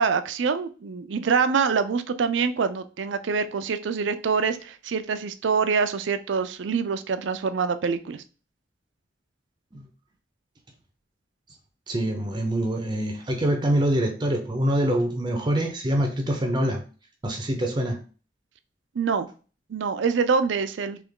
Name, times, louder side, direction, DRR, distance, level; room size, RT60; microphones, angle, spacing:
voice 1, 0.0-8.2 19.0-19.3 19.7-21.0, right 5 dB, 80° right, 11 dB, 0.4 m, -25 dB
voice 2, 11.9-16.8 17.2-18.0, right 1 dB, 25° right, 4 dB, 0.6 m, -25 dB
3.4 x 3.0 x 3.6 m, 0.36 s
head